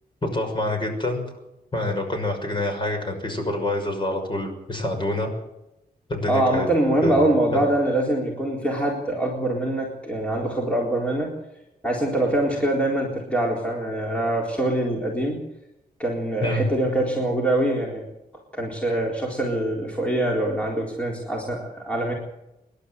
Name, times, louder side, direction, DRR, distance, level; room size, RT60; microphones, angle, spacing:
voice 1, 0.2-1.2 1.7-5.3 6.1-6.7 7.0-7.6 16.4-16.7, left 1 dB, 30° left, 4 dB, 6.2 m, -26 dB
voice 2, 6.3-11.3 11.8-15.4 16.0-18.0 18.5-22.1, right 1 dB, 10° left, -2 dB, 4.0 m, -24 dB
27.5 x 12.0 x 8.1 m, 0.90 s
wide cardioid pair, 140°, 16 cm